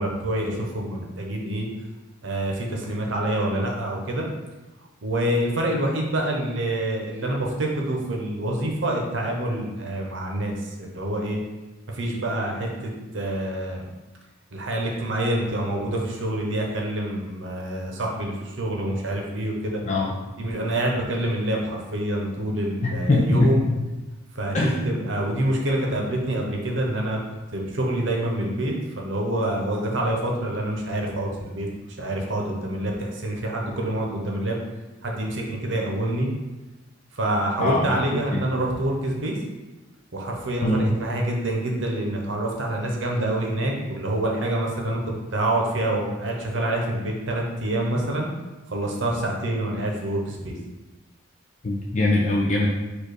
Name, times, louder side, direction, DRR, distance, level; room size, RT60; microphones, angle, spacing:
voice 1, 0.0-1.7 2.2-4.3 5.0-11.4 11.9-12.7 13.1-13.8 14.5-19.8 20.4-23.6 24.3-27.2 27.5-31.7 32.0-34.6 35.0-36.3 37.2-39.3 40.1-45.0 45.3-48.3 48.7-50.5, right 1 dB, 70° right, 0 dB, 0.8 m, -26 dB
voice 2, 22.8-23.8 24.5-24.8 37.6-38.0 38.3-38.4 40.6-40.9 51.6-52.7, left 2 dB, 35° left, -3 dB, 0.5 m, -22 dB
4.5 x 2.4 x 4.8 m, 1.1 s
head